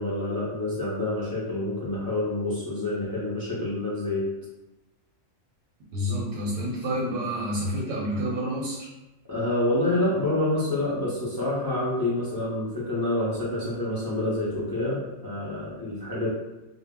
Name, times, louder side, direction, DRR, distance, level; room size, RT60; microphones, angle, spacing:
voice 1, 0.0-4.3 9.3-16.3, left 1 dB, 35° left, -7 dB, 0.3 m, -27 dB
voice 2, 5.9-8.9, equal, 90° right, -3 dB, 1.0 m, -29 dB
2.1 x 2.0 x 3.5 m, 0.99 s
omnidirectional pair, 1.3 m